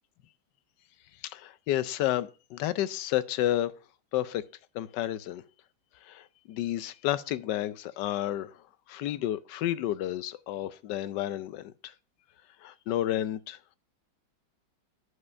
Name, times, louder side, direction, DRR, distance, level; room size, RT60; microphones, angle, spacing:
voice 1, 1.2-3.7 4.1-4.4 4.7-5.4 6.0-11.9 12.6-13.6, left 13 dB, 70° left, 1.2 m, -31 dB
9.7 x 5.6 x 5.2 m
omnidirectional pair, 2.1 m